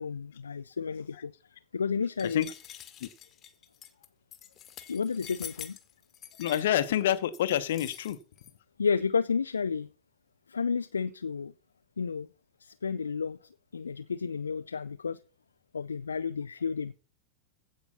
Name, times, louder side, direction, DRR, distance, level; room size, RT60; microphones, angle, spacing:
voice 1, 0.0-1.3 1.7-2.5 4.9-5.8 8.8-9.9 10.5-11.5 12.0-12.3 12.6-13.4 13.7-15.2 15.7-16.9, left 5 dB, 75° left, 0.4 m, -31 dB
sound 1, 2.2-8.5, left 10 dB, 30° left, 1.5 m, -46 dB
voice 2, 6.4-8.2, left 11 dB, 55° left, 1.0 m, -28 dB
16.0 x 5.3 x 5.6 m
figure-of-eight pair, 90°, 0 cm